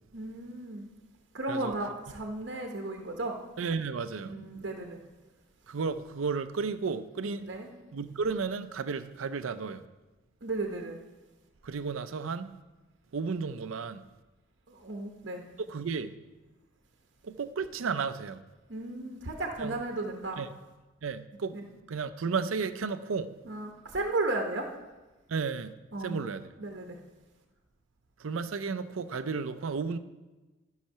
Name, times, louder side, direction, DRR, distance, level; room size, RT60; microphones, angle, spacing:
voice 1, 0.1-0.9 1.3-3.4 4.2-5.0 7.4-7.7 10.4-11.0 14.7-15.4 18.7-20.4 21.5-21.6 23.4-24.7 25.9-26.2 26.6-27.0, right 2 dB, 60° right, 0.9 m, -34 dB
voice 2, 3.6-4.3 5.7-7.5 7.9-9.8 11.6-12.5 13.1-14.0 15.7-16.2 17.2-18.4 19.6-19.8 20.4-20.5 21.0-21.6 21.9-23.3 25.3-25.7 26.0-26.5 28.2-30.0, right 5 dB, 80° right, 0.5 m, -33 dB
13.5 x 5.8 x 5.6 m
head